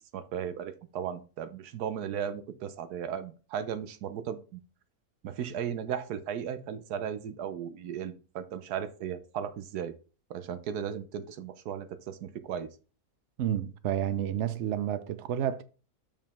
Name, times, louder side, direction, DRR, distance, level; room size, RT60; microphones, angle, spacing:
voice 1, 0.0-4.6 5.2-9.9 10.3-12.7, right 8 dB, 90° right, 1.3 m, -36 dB
voice 2, 13.4-15.6, right 10 dB, 60° right, 0.8 m, -30 dB
7.2 x 5.4 x 4.2 m
omnidirectional pair, 1.6 m